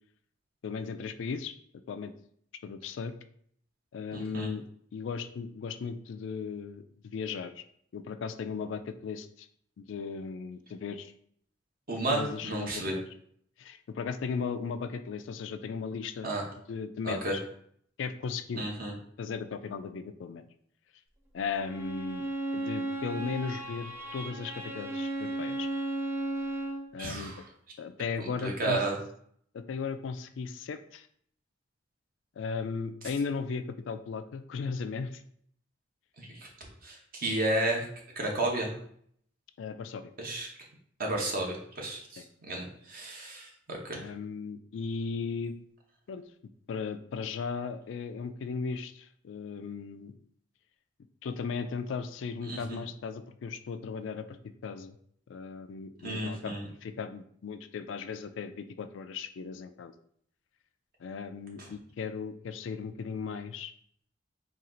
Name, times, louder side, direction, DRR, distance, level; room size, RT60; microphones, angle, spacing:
voice 1, 0.6-1.5 1.9-2.1 2.6-3.1 3.9-4.6 4.9-7.6 7.9-9.5 9.8-11.1 12.1-13.1 13.6-16.3 16.7-17.4 18.0-18.6 19.2-20.4 21.3-22.3 22.5-25.7 26.9-27.3 27.8-28.8 29.5-31.1 32.4-35.2 39.6-40.1 42.2-42.3 43.9-45.6 46.1-46.2 46.7-50.1 51.2-54.4 54.6-55.0 55.3-56.5 56.8-59.9 61.0-63.7, left 5 dB, 70° left, 10 dB, 0.3 m, -36 dB
voice 2, 4.1-4.5 11.9-12.9 16.2-16.4 17.0-17.3 18.6-18.9 27.0-27.4 28.4-29.0 36.2-36.5 36.8-37.9 38.2-38.7 40.2-40.5 41.0-44.0 52.5-52.8 56.0-56.7 61.6-61.7, right 2 dB, 50° right, 0 dB, 1.0 m, -32 dB
Bowed string instrument, 21.5-26.9, right 2 dB, 15° right, 0.5 m, -35 dB
4.2 x 2.4 x 3.8 m, 0.64 s
head